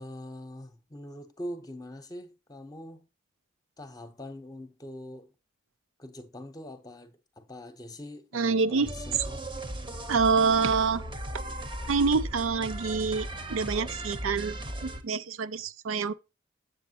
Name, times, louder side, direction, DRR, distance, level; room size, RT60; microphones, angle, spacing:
voice 1, 0.0-3.1 3.8-5.3 6.0-9.4, left 1 dB, 20° left, 0.8 m, -43 dB
voice 2, 8.3-8.9 10.1-11.0 11.3-11.4 11.9-16.1, right 5 dB, 80° right, 0.5 m, -26 dB
sound 1, 8.8-15.0, right 1 dB, 25° right, 0.8 m, -37 dB
8.0 x 6.9 x 2.8 m
head